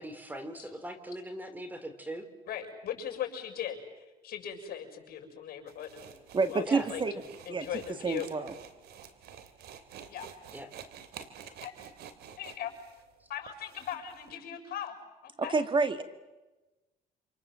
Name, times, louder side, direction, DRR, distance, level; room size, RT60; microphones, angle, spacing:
voice 1, 0.0-2.3 6.7-6.9 10.5-10.7, right 1 dB, 10° right, 9 dB, 3.5 m, -40 dB
voice 2, 2.5-6.1 6.4-6.6 6.9-7.0 7.5-8.3 10.1-10.3 11.6-11.7 12.4-12.7 13.3-15.0 15.2-15.6, left 10 dB, 65° left, 4 dB, 6.9 m, -39 dB
sound 1, 5.7-14.3, right 8 dB, 75° right, 3.0 m, -50 dB
voice 3, 6.3-7.1 7.5-7.7 8.0-8.5 15.4-16.0, right 4 dB, 30° right, 10 dB, 1.9 m, -28 dB
28.0 x 27.5 x 7.6 m, 1.1 s
cardioid pair, 110°, 17 cm